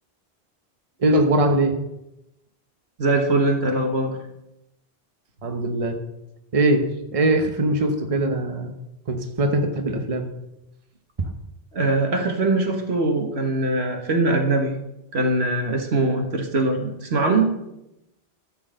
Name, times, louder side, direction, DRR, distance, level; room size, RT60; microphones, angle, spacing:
voice 1, 1.0-1.8 5.4-6.0 6.5-6.9 7.1-8.7 9.1-10.3 11.2-11.3, right 1 dB, 35° right, 5 dB, 1.0 m, -21 dB
voice 2, 3.0-4.3 11.7-14.8 15.1-17.6, right 2 dB, 75° right, 4 dB, 1.6 m, -22 dB
12.5 x 4.7 x 7.6 m, 0.90 s
omnidirectional pair, 1.1 m